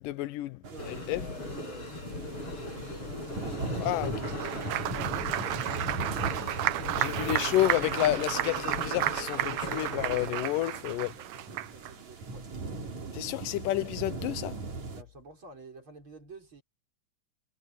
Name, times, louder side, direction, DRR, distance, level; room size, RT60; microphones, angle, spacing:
voice 1, 0.0-1.2 3.8-4.1 7.0-11.1 13.1-14.6, left 15 dB, 80° left, 2.3 m, -30 dB
sound 1, 0.6-15.0, right 3 dB, 55° right, 4.8 m, -40 dB
voice 2, 0.7-1.9 2.3-3.3 3.6-6.1 6.8-7.4 8.3-8.5 10.9-12.8 14.9-16.6, right 2 dB, 35° right, 6.2 m, -50 dB
sound 2, 0.8-10.5, left 2 dB, 40° left, 6.5 m, -39 dB
Applause, 4.1-11.9, right 15 dB, 80° right, 1.6 m, -32 dB
omnidirectional pair, 3.9 m